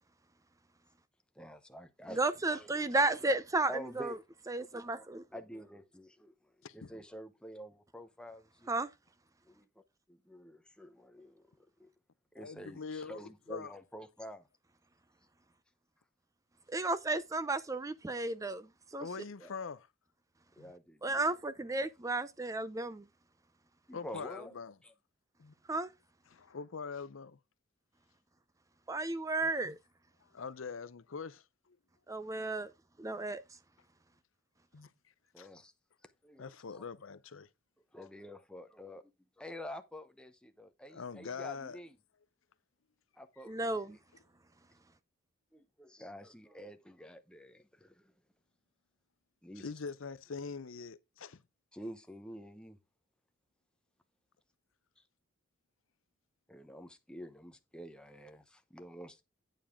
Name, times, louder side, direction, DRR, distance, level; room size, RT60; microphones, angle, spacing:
voice 1, 1.4-3.3 3.7-4.2 4.6-5.0 5.3-8.7 9.4-9.7 10.1-11.9 12.3-14.5 19.4-19.5 20.6-21.3 21.6-21.7 23.9-24.9 35.3-35.7 36.2-36.8 37.9-39.1 39.4-42.0 43.1-44.0 45.5-48.1 49.4-49.8 51.7-52.8 56.5-59.2, equal, 5° left, 0.8 m, -49 dB
voice 2, 2.1-3.7 4.0-4.1 4.5-5.2 8.7-8.9 16.7-18.7 18.9-19.1 21.0-23.0 25.7-25.9 28.9-29.8 32.1-32.7 33.0-33.4 43.5-44.0, right 2 dB, 15° right, 0.5 m, -33 dB
voice 3, 12.4-13.7 19.0-19.9 20.6-20.7 23.9-24.7 25.4-25.5 26.3-27.4 30.2-31.8 34.7-34.9 35.4-35.5 36.4-37.5 40.9-41.8 49.6-51.4, left 5 dB, 75° left, 0.6 m, -43 dB
8.9 x 7.3 x 3.5 m
head